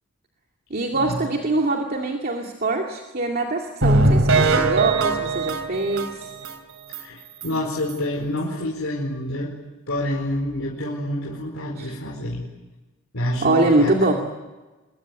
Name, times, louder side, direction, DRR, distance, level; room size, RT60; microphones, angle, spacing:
voice 1, 0.7-6.3 11.8-11.9 13.4-14.1, right 2 dB, 45° right, 1 dB, 2.4 m, -23 dB
sound 1, 3.8-6.5 6.9-7.0 7.4-7.5 7.9-8.0, right 2 dB, 70° right, 3.2 m, -20 dB
voice 2, 6.9-9.5 9.9-12.4 13.1-14.1, left 1 dB, 70° left, -3 dB, 4.7 m, -28 dB
26.0 x 22.0 x 9.3 m, 1.2 s
head